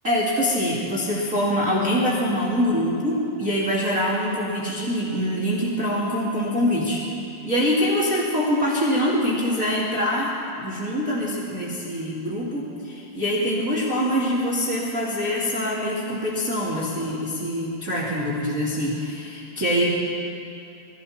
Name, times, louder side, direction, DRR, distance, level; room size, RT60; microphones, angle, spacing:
voice 1, 0.0-7.0 7.4-20.1, equal, 25° right, -6 dB, 2.4 m, -24 dB
28.5 x 21.0 x 4.4 m, 2.6 s
omnidirectional pair, 4.8 m